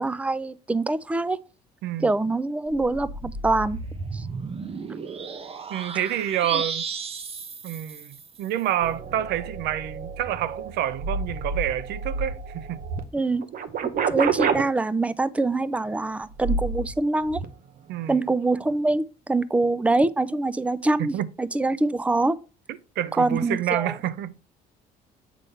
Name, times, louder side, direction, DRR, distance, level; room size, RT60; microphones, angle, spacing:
voice 1, 0.0-1.4 2.0-3.8 4.1-4.2 6.5-6.6 13.1-13.5 14.1-17.4 18.1-22.4 23.2-23.9, right 2 dB, 10° right, 0.4 m, -24 dB
sound 1, 2.7-8.5, right 4 dB, 35° right, 0.9 m, -34 dB
voice 2, 5.7-6.9 7.6-12.8 17.9-18.1 21.0-21.3 23.0-24.4, right 11 dB, 75° right, 0.7 m, -28 dB
sound 2, 8.8-13.0 13.4-14.6 16.3-16.9 17.3-17.4, right 5 dB, 55° right, 1.0 m, -29 dB
8.4 x 3.5 x 5.5 m
cardioid pair, 110°, 17 cm